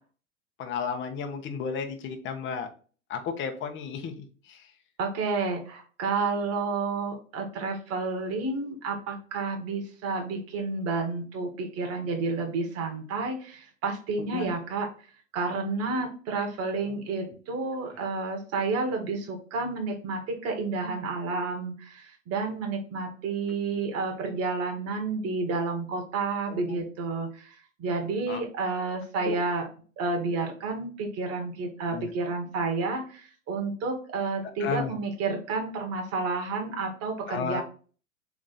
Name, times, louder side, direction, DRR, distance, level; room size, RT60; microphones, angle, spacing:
voice 1, 0.6-2.7 3.1-4.6 14.2-14.5 26.5-26.8 28.3-28.4 29.2-29.4 31.9-32.1 34.6-34.9 37.3-37.6, left 6 dB, 30° left, 6 dB, 0.9 m, -33 dB
voice 2, 5.0-14.9 15.3-27.5 27.8-29.7 30.0-37.6, right 3 dB, 35° right, 3 dB, 1.6 m, -30 dB
3.6 x 3.5 x 4.0 m, 0.39 s
hypercardioid pair, 100°, 41 cm